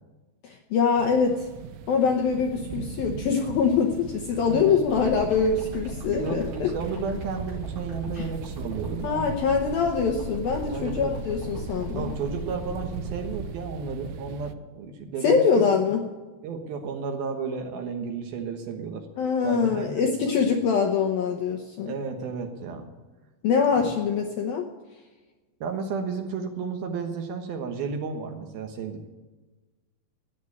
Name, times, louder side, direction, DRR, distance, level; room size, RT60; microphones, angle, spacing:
voice 1, 0.4-1.5 1.9-6.7 8.1-8.3 9.0-12.1 15.2-16.0 19.2-21.9 23.4-24.6, left 6 dB, 80° left, 3 dB, 2.1 m, -24 dB
sound 1, 1.0-14.5, right 9 dB, 85° right, 3.2 m, -40 dB
voice 2, 4.5-4.8 6.1-9.4 10.7-11.1 11.9-15.6 16.4-19.1 19.4-20.3 21.9-22.9 23.8-23.9 25.6-29.1, right 5 dB, 70° right, 4 dB, 2.5 m, -33 dB
sound 2, 4.9-13.5, right 1 dB, 35° right, 6.8 m, -37 dB
13.5 x 9.3 x 9.6 m, 1.2 s
omnidirectional pair, 5.7 m